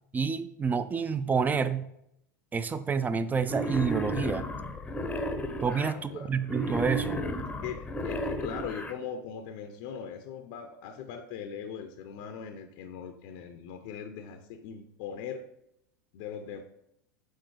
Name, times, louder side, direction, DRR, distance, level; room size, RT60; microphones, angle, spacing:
voice 1, 0.1-1.9 2.5-4.4 5.6-7.2, right 5 dB, 15° right, 13 dB, 0.5 m, -28 dB
Wild animals, 3.4-5.9 6.4-8.9, equal, 10° left, 0.7 m, -33 dB
voice 2, 5.7-6.3 7.6-15.5 16.1-16.6, left 7 dB, 55° left, 7 dB, 0.6 m, -40 dB
6.4 x 3.8 x 4.8 m, 0.77 s
hypercardioid pair, 90°, 10 cm